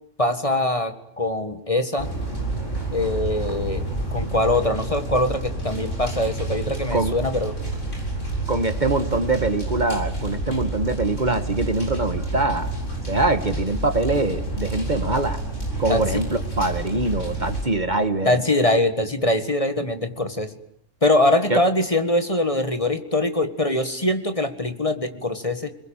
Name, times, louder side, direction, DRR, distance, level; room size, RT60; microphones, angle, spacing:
voice 1, 0.2-2.1 2.9-3.9 4.1-7.6 15.9-16.2 18.2-20.5 21.0-25.8, left 1 dB, 25° left, 8 dB, 1.8 m, -23 dB
sound 1, 2.0-17.6, right 2 dB, 75° left, 8.5 m, -29 dB
voice 2, 8.5-12.7 13.1-15.4 15.8-18.4 21.5-21.6, right 2 dB, 35° right, 10 dB, 1.6 m, -23 dB
29.5 x 21.5 x 9.0 m, 0.68 s
omnidirectional pair, 1.3 m